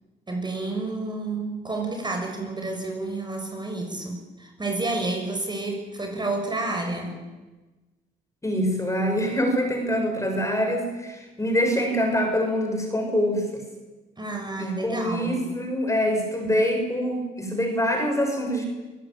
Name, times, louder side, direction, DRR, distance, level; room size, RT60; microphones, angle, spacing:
voice 1, 0.3-7.2 14.2-15.4, right 2 dB, 20° right, 3 dB, 6.3 m, -30 dB
voice 2, 8.4-13.7 14.6-18.7, equal, 15° left, 3 dB, 6.4 m, -25 dB
27.5 x 17.0 x 9.1 m, 1.2 s
cardioid pair, 90°, 20 cm